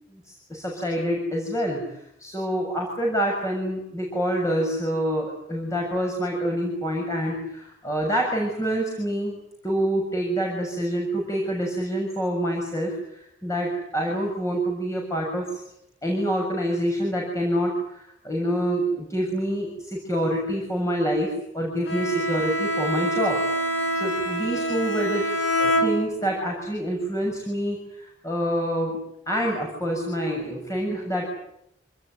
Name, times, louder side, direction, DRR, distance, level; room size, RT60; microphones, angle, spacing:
voice 1, 0.1-9.4 9.6-15.6 16.0-23.4 23.9-25.2 25.6-29.0 29.3-31.2, equal, 15° left, -1 dB, 6.8 m, -27 dB
Bowed string instrument, 21.9-26.5, right 1 dB, 80° left, 4.8 m, -26 dB
27.0 x 20.0 x 9.7 m, 0.78 s
head